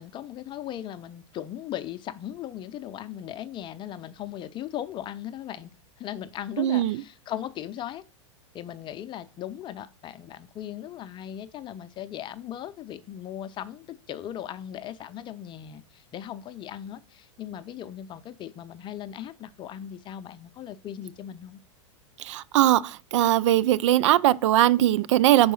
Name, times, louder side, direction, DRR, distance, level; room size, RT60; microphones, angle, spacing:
voice 1, 0.0-8.0 8.5-21.6, left 11 dB, 30° left, 0.5 m, -38 dB
voice 2, 6.6-7.0 22.2-25.5, right 13 dB, 70° right, 0.4 m, -20 dB
5.1 x 4.6 x 5.4 m
hypercardioid pair, 105°, 16 cm